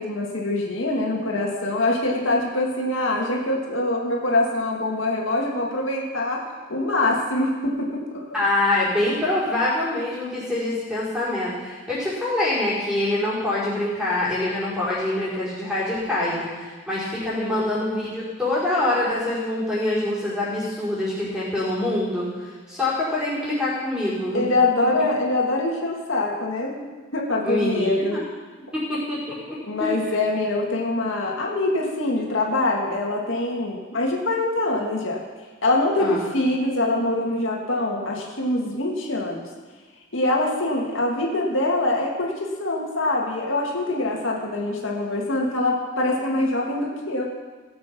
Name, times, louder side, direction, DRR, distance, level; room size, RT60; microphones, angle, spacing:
voice 1, 0.0-8.0 17.3-17.7 24.3-28.2 29.6-35.2 35.6-39.4 40.1-47.2, left 2 dB, 75° left, -1 dB, 2.0 m, -24 dB
voice 2, 8.3-24.4 27.4-28.2 28.7-29.9 36.0-36.2, left 2 dB, 5° right, -9 dB, 5.0 m, -25 dB
18.0 x 7.8 x 6.0 m, 1.4 s
head